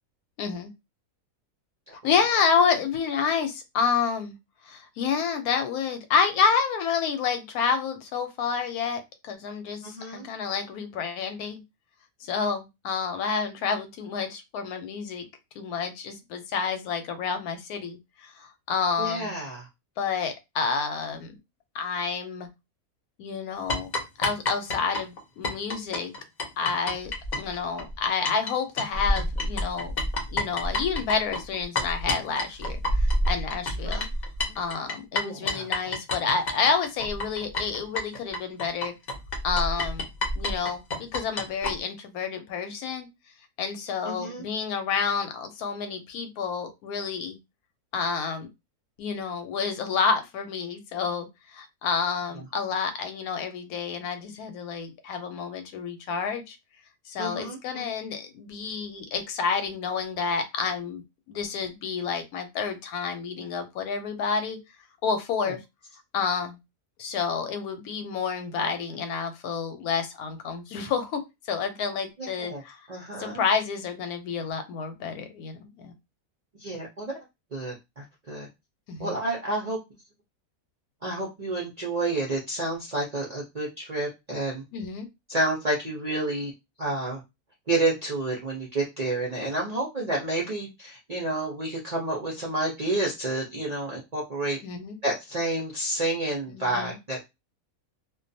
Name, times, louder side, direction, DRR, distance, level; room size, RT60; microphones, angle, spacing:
voice 1, 0.4-0.7 2.0-4.4 4.6-11.6 12.2-15.3 15.6-19.3 20.0-21.4 21.7-22.5 23.2-23.9 24.2-26.1 26.6-29.9 30.3-34.0 34.6-38.9 39.4-40.1 40.4-43.1 43.6-47.4 47.9-48.5 49.0-56.6 57.1-61.0 61.3-64.6 65.0-65.6 66.1-66.6 67.0-72.8 73.2-75.9 78.9-79.1 84.7-85.1 94.6-95.0 96.5-97.0, left 5 dB, 85° left, 8 dB, 1.1 m, -29 dB
voice 2, 9.8-10.3 19.0-19.7 33.8-34.1 34.4-34.5 35.2-35.7 44.0-44.5 57.2-57.8 65.4-65.5 72.2-72.6 72.9-73.4 76.6-77.1 77.5-78.5 79.0-79.8 81.0-84.6 85.3-86.5 86.8-87.2 87.7-94.6 95.0-97.2, right 2 dB, 60° right, -3 dB, 0.4 m, -30 dB
sound 1, 23.7-28.5 28.8-41.7, left 1 dB, 60° left, 0.4 m, -28 dB
2.4 x 2.2 x 2.6 m, 0.23 s
omnidirectional pair, 1.5 m